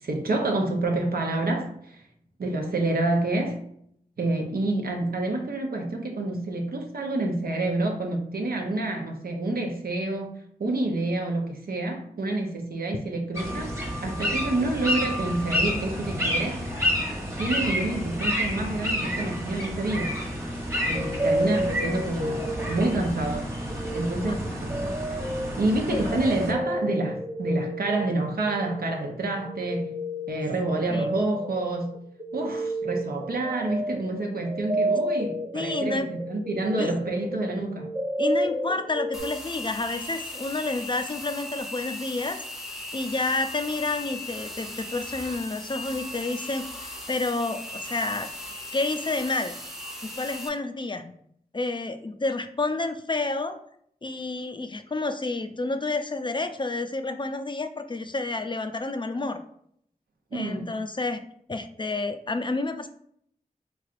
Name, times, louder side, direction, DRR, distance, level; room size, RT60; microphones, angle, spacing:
voice 1, 0.0-2.0 2.4-3.6 4.2-10.3 10.6-13.7 14.0-16.6 17.4-20.1 20.9-23.5 23.9-24.9 25.6-30.0 30.3-31.9 32.3-37.9 60.3-60.7, right 2 dB, 85° right, 2 dB, 0.7 m, -28 dB
sound 1, 13.3-26.5, equal, 20° right, 1.1 m, -30 dB
sound 2, 20.8-23.2 23.5-39.2, equal, 55° right, 1.0 m, -31 dB
voice 2, 35.5-36.1 36.8-36.9 38.2-42.4 42.9-46.6 47.1-48.3 48.7-49.5 50.0-51.1 51.5-53.6 54.0-59.4 60.3-61.2 61.5-62.9, left 3 dB, 35° left, 8 dB, 0.4 m, -29 dB
sound 3, 39.1-50.5, left 1 dB, 5° right, 0.7 m, -38 dB
3.7 x 3.2 x 2.4 m, 0.68 s
wide cardioid pair, 50°, 15 cm